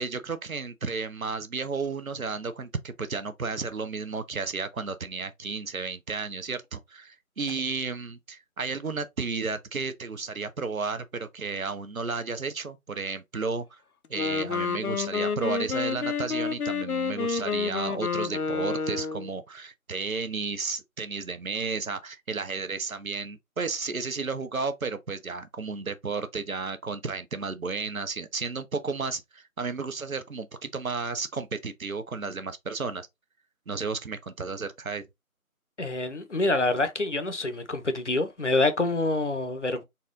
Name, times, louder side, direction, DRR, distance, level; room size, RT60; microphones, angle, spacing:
voice 1, 0.0-13.8 14.1-33.1 33.7-35.0, right 4 dB, 70° right, 0.8 m, -33 dB
Wind instrument woodwind instrument, 14.0-19.3, left 5 dB, 90° left, 0.7 m, -29 dB
voice 2, 35.8-39.8, left 2 dB, 55° left, 0.7 m, -26 dB
4.2 x 2.3 x 3.8 m
figure-of-eight pair, 165°, 43 cm